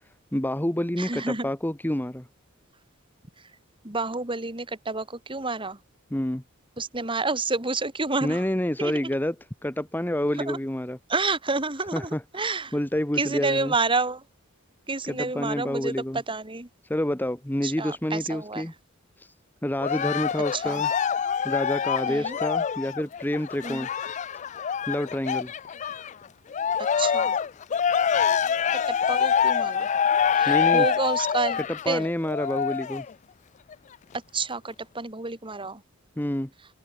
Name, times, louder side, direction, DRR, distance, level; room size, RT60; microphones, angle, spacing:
voice 1, 0.3-2.3 6.1-6.4 8.2-9.3 9.6-11.0 11.9-13.7 15.0-16.2 16.9-18.7 19.2-19.3 19.6-20.9 21.4-23.9 24.9-25.5 30.5-30.9 31.6-33.0 36.2-36.5, left 1 dB, 10° left, 0.9 m, -28 dB
voice 2, 1.0-1.5 3.8-5.8 6.8-8.4 8.8-9.0 10.5-10.6 11.1-12.7 13.2-14.2 14.9-16.7 17.6-18.7 20.5-20.8 22.1-22.4 23.6-23.9 27.0-27.4 28.7-29.9 30.3-32.0 34.3-35.8, right 3 dB, 25° right, 2.7 m, -29 dB
Cheering, 19.8-26.1 26.5-33.1 33.7-33.8, left 7 dB, 35° left, 0.3 m, -25 dB
head